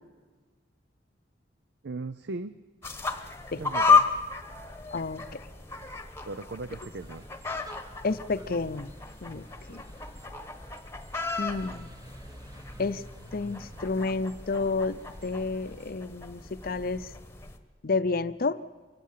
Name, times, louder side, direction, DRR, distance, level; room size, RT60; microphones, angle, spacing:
voice 1, 1.8-2.6 3.6-4.1 6.2-7.3, right 3 dB, 65° right, 13 dB, 0.6 m, -37 dB
sound 1, 2.8-17.6, left 5 dB, 15° left, 1.2 m, -32 dB
voice 2, 4.9-5.4 8.0-8.9 9.2-9.8 11.4-11.9 12.8-13.0 13.3-17.1 17.8-18.6, left 3 dB, 55° left, 14 dB, 0.6 m, -30 dB
sound 2, 6.7-16.0, right 1 dB, 20° right, 1.1 m, -51 dB
24.5 x 16.0 x 7.4 m, 1.4 s
head